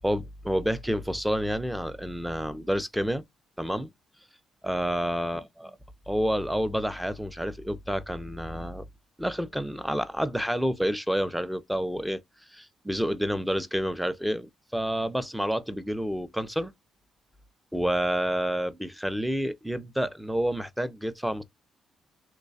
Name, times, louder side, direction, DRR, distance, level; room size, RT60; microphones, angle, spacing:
voice 1, 0.0-3.2 3.6-3.9 4.6-5.8 6.1-8.8 9.2-12.2 12.5-16.7 17.7-21.4, equal, 5° right, 0.6 m, -29 dB
3.1 x 2.2 x 4.0 m
cardioid pair, 90°, 0 cm